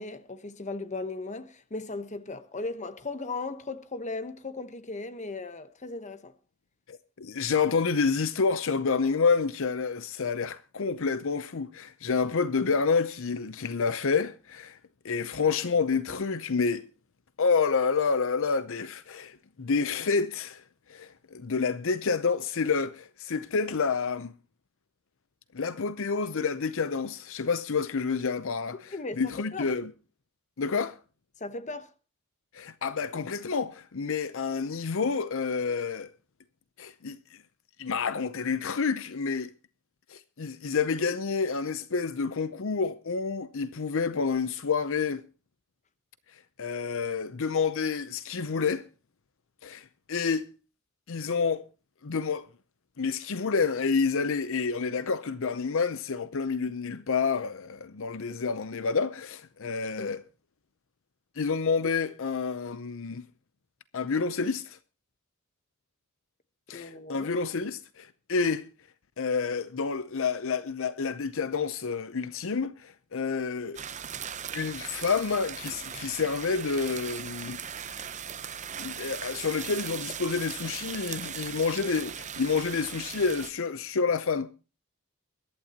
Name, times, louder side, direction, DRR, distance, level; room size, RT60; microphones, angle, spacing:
voice 1, 0.0-6.3 28.9-29.2 29.5-29.7 31.4-31.9 60.0-60.2 66.7-67.3, left 3 dB, 35° left, 1.1 m, -37 dB
voice 2, 6.9-14.8 15.0-16.8 17.4-20.6 20.9-24.3 25.5-29.9 30.6-31.0 32.5-36.1 36.8-37.4 37.8-39.5 40.1-45.2 46.3-48.8 49.6-50.5 51.1-51.6 52.0-52.5 53.0-60.2 61.4-63.3 63.9-64.8 66.7-68.7 69.2-73.8 74.5-77.6 78.5-84.5, left 5 dB, 65° left, 0.7 m, -29 dB
sound 1, 73.7-83.5, right 8 dB, 35° right, 0.7 m, -39 dB
23.0 x 11.5 x 2.9 m
head